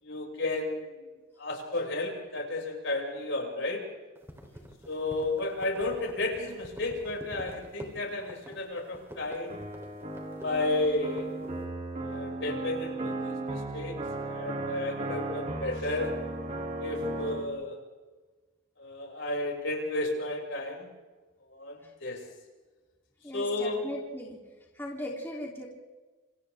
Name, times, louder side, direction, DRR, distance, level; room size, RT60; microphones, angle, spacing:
voice 1, 0.0-1.1 1.4-3.8 4.8-9.6 10.4-11.3 12.0-16.1 16.8-17.8 18.8-20.9 21.5-22.2 23.3-23.8, left 2 dB, 60° left, 0 dB, 6.6 m, -32 dB
sound 1, 4.1-11.6, equal, 10° right, 3.6 m, -46 dB
sound 2, 9.5-17.5, right 2 dB, 35° right, 3.1 m, -36 dB
voice 2, 23.2-24.4 24.7-25.7, left 1 dB, 10° left, -2 dB, 3.3 m, -38 dB
28.5 x 27.5 x 3.6 m, 1.3 s
head